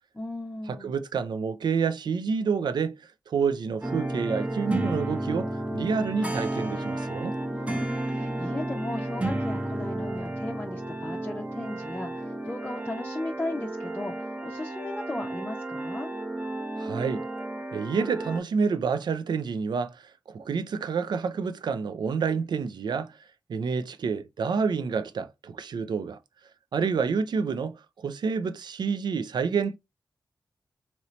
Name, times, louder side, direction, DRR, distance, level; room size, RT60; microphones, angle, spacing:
voice 1, 0.1-1.0 7.5-16.1, left 2 dB, 20° left, 0.5 m, -36 dB
voice 2, 0.7-3.0 3.3-7.4 16.8-17.3 17.7-23.2 23.5-26.2 26.7-29.7, right 5 dB, 75° right, 0.4 m, -28 dB
sound 1, 3.8-18.4, right 1 dB, 15° right, 0.7 m, -32 dB
2.9 x 2.7 x 3.0 m
cardioid pair, 40°, 7 cm